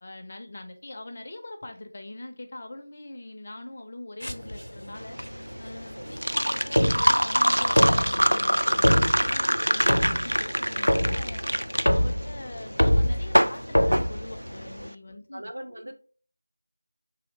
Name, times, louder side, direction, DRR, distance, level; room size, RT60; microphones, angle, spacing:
voice 1, 0.0-5.2 5.6-11.5 11.9-15.4 15.7-15.8, left 2 dB, 25° left, 5 dB, 0.4 m, -42 dB
sound 1, 4.2-14.9, equal, 80° left, 0.5 m, -27 dB
sound 2, 5.0-14.8, equal, 80° right, 0.3 m, -25 dB
voice 2, 15.3-16.0, right 1 dB, 50° right, 4 dB, 0.7 m, -40 dB
3.2 x 2.7 x 4.0 m, 0.39 s
figure-of-eight pair, 170°, 0 cm